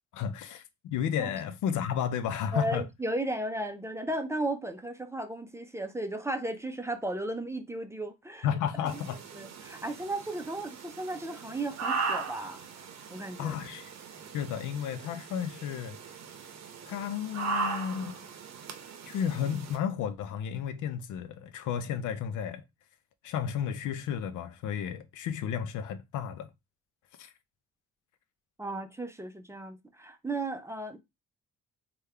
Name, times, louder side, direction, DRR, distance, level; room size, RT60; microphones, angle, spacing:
voice 1, 0.1-2.8 8.4-9.2 13.4-13.9 14.3-16.0 16.9-18.2 19.1-22.6 23.2-26.5 27.2-27.3, left 8 dB, 80° left, 0.5 m, -32 dB
voice 2, 2.5-8.5 9.3-12.6 13.1-13.5 28.6-31.0, right 1 dB, 10° right, 0.5 m, -35 dB
sound 1, 8.9-19.8, right 4 dB, 60° right, 0.7 m, -38 dB
3.4 x 2.2 x 3.2 m
cardioid pair, 90°, 30 cm